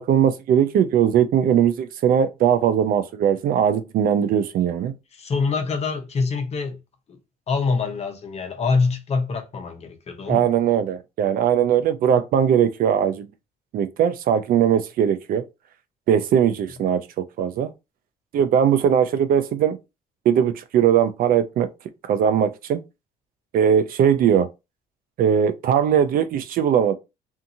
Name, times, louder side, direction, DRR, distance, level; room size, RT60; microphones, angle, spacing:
voice 1, 0.0-4.9 10.3-13.3 13.7-15.4 16.1-17.7 18.3-19.8 20.2-21.7 22.0-22.8 23.5-24.5 25.2-26.9, right 8 dB, 60° right, 0.4 m, -20 dB
voice 2, 5.2-6.8 7.1-7.2 7.5-10.5, left 4 dB, 40° left, 0.8 m, -25 dB
2.6 x 2.4 x 2.7 m
cardioid pair, 110°, 17 cm